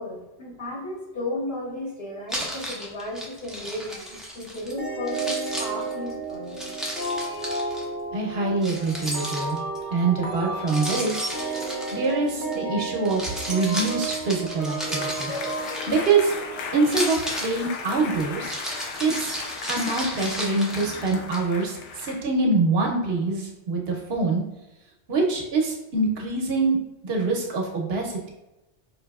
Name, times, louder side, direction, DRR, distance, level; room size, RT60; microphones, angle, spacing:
voice 1, 0.0-6.8, left 1 dB, 60° left, -4 dB, 1.3 m, -34 dB
Keys jangling, 2.3-4.7 5.1-7.8 8.6-9.8 10.7-12.5 13.0-16.3 16.8-21.4, equal, ahead, 0.4 m, -34 dB
sound 1, 4.8-17.2, right 3 dB, 45° left, 0.9 m, -33 dB
voice 2, 8.1-9.6 9.9-11.2 11.9-15.3 15.9-16.3 16.7-18.5 19.0-19.4 19.7-24.4 25.1-26.8 27.0-28.3, right 3 dB, 65° right, 0 dB, 0.9 m, -25 dB
sound 2, 14.3-22.2, left 5 dB, 90° left, 0.9 m, -36 dB
5.2 x 2.7 x 2.3 m, 0.97 s
omnidirectional pair, 1.2 m